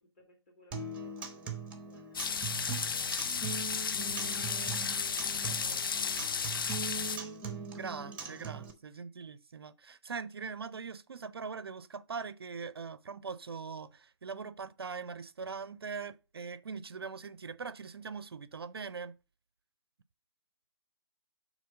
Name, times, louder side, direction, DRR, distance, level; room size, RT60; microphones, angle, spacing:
voice 1, 0.0-3.3 3.6-5.8 6.2-7.0, left 1 dB, 30° left, 2.4 m, -60 dB
Acoustic guitar, 0.7-8.7, right 5 dB, 10° right, 0.7 m, -41 dB
sound 1, 2.1-7.2, left 6 dB, 50° left, 0.4 m, -33 dB
voice 2, 7.7-19.1, right 5 dB, 60° right, 0.4 m, -41 dB
7.7 x 3.1 x 5.2 m
figure-of-eight pair, 135°, 14 cm